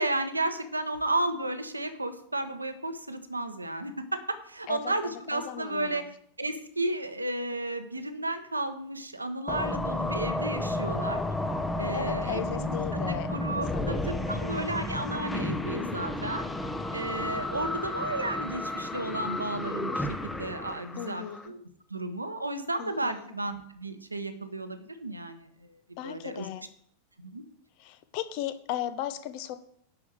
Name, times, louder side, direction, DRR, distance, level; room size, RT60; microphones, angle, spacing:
voice 1, 0.0-6.0 6.4-11.2 11.8-16.4 16.9-21.6 21.9-26.5 27.2-27.4, right 2 dB, 80° right, 8 dB, 1.1 m, -33 dB
voice 2, 4.7-6.1 11.9-13.3 13.7-14.8 21.0-21.5 22.8-23.3 26.0-26.7 27.8-29.6, left 12 dB, 45° left, 12 dB, 0.9 m, -37 dB
sound 1, 9.5-21.5, left 2 dB, 10° left, 0.9 m, -32 dB
11.0 x 4.7 x 6.4 m, 0.67 s
figure-of-eight pair, 90°, 0 cm